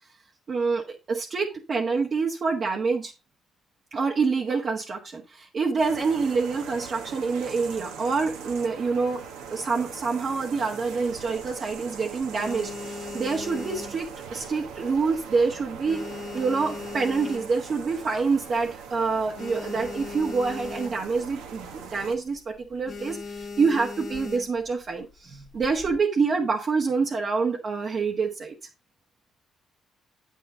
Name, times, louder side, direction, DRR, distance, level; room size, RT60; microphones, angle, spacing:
voice 1, 0.5-3.1 3.9-9.2 9.5-16.0 16.3-28.5, right 4 dB, 50° right, -1 dB, 1.5 m, -26 dB
sound 1, 5.8-22.1, right 6 dB, 85° right, 1.4 m, -41 dB
sound 2, 11.1-11.8 12.2-14.7 15.0-15.3 15.6-17.9 18.3-18.4 18.6-18.7 19.1-21.3 21.6-21.8 22.1-22.4 22.9-24.7 25.4-26.0, left 4 dB, 55° left, 1.9 m, -38 dB
8.3 x 6.5 x 3.8 m, 0.27 s
hypercardioid pair, 55°, 0 cm